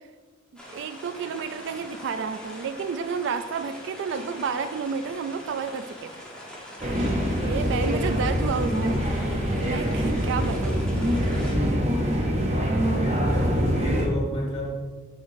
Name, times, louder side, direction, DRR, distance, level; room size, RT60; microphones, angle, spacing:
sound 1, 0.6-11.5, equal, 5° left, 1.2 m, -42 dB
voice 1, 0.7-6.1 7.4-9.0 9.6-10.8, right 5 dB, 65° right, 10 dB, 0.3 m, -30 dB
sound 2, 6.8-14.1, equal, 35° right, 0.7 m, -24 dB
voice 2, 12.8-14.7, equal, 30° left, -5 dB, 1.7 m, -31 dB
9.9 x 3.6 x 2.6 m, 1.4 s
head